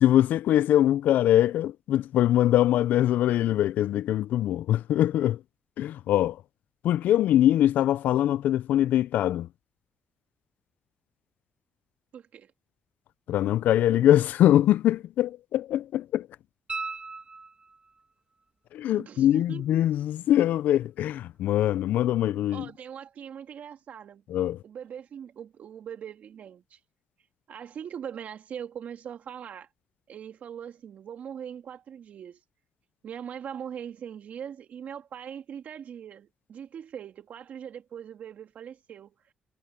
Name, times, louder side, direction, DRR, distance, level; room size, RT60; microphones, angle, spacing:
voice 1, 0.0-5.4 5.8-6.4 6.8-9.5 13.3-16.3 18.7-22.7 24.3-24.6, left 12 dB, 80° left, 0.5 m, -23 dB
voice 2, 12.1-12.5 19.0-19.6 22.5-24.2 24.6-26.8 27.5-29.7 30.1-32.4 33.0-39.3, right 8 dB, 70° right, 1.9 m, -41 dB
sound 1, 16.7-18.0 20.8-20.9, right 4 dB, 30° right, 2.0 m, -37 dB
supercardioid pair, 55°, 3 cm